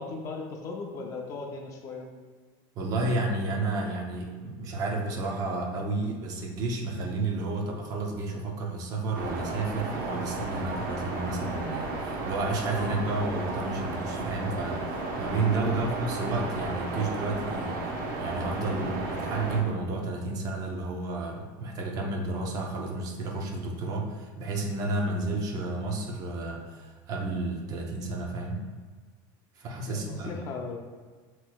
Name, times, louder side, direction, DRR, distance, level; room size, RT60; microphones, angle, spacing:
voice 1, 0.0-2.1 15.7-15.9 29.9-30.8, left 3 dB, 25° left, 0 dB, 0.5 m, -37 dB
voice 2, 2.8-17.8 18.2-28.6 29.6-30.4, right 2 dB, 30° right, 1 dB, 0.7 m, -31 dB
sound 1, 9.1-19.6, right 2 dB, 80° right, 1.0 m, -33 dB
7.6 x 3.0 x 2.3 m, 1.4 s
cardioid pair, 165°, 12 cm